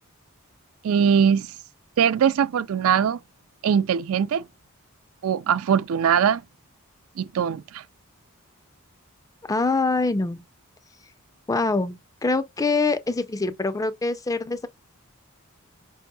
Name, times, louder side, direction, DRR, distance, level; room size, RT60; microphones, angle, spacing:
voice 1, 0.8-1.5 2.0-3.2 3.6-4.4 5.2-6.4 7.2-7.8, right 7 dB, 70° right, 0.3 m, -21 dB
voice 2, 9.4-10.4 11.5-14.7, left 3 dB, 15° left, 0.4 m, -24 dB
5.1 x 2.8 x 2.3 m
head